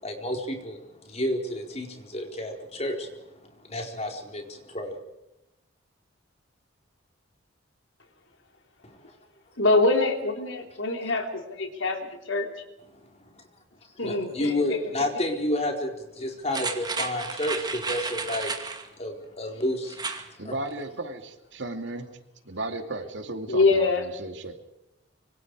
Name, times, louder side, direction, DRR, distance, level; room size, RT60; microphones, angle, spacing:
voice 1, 0.0-3.1 3.4-5.0 8.8-9.1 12.9-13.4 14.0-18.5 19.0-20.0 20.4-20.5, left 1 dB, 35° left, 3 dB, 4.4 m, -31 dB
voice 2, 9.6-12.5 14.0-14.8 23.5-24.1, left 3 dB, 70° left, 4 dB, 3.6 m, -24 dB
sound 1, 16.5-18.9 19.9-20.3 20.7-20.8, right 4 dB, 20° right, 2.3 m, -32 dB
voice 3, 20.4-22.1 22.4-23.9 24.2-24.6, right 2 dB, 65° right, 6 dB, 2.6 m, -35 dB
26.0 x 25.0 x 4.9 m, 0.92 s
head